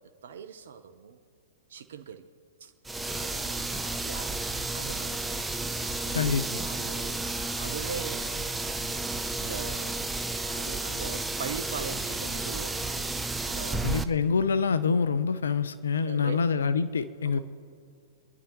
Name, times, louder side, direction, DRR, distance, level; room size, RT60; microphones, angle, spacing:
voice 1, 0.2-1.2 1.7-2.3 2.6-2.7 3.2-4.4 4.7-5.4 5.8-7.3 7.6-8.4 9.1-10.0 10.5-13.1 13.4-13.8 15.9-16.4 17.2-17.4, right 7 dB, 70° right, 7 dB, 0.9 m, -41 dB
sound 1, 2.8-14.0, right 2 dB, 5° right, 0.7 m, -32 dB
voice 2, 6.1-6.4 13.8-17.4, left 5 dB, 80° left, 14 dB, 0.6 m, -26 dB
29.0 x 11.0 x 3.1 m, 2.3 s
hypercardioid pair, 115°, 0 cm